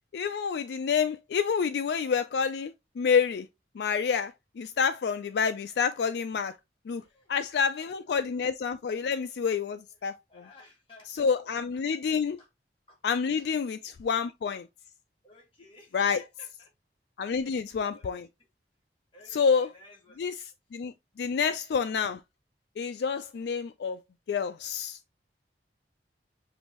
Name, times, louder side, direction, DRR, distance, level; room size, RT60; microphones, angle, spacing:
voice 1, 0.1-3.5 3.8-6.6 6.9-7.0 7.3-10.4 11.1-12.4 13.0-14.7 15.9-16.2 17.2-18.3 19.3-19.7 20.2-20.4 20.7-22.2 22.8-24.0 24.3-25.0, left 6 dB, 70° left, 0.3 m, -28 dB
voice 2, 7.0-7.9 10.3-11.6 12.4-12.5 12.9-13.0 13.4-13.5 13.9-14.0 15.2-16.7 17.2-17.6 17.9-18.1 19.1-20.2 21.3-21.4, left 2 dB, 30° left, 1.8 m, -56 dB
6.7 x 2.6 x 3.0 m
head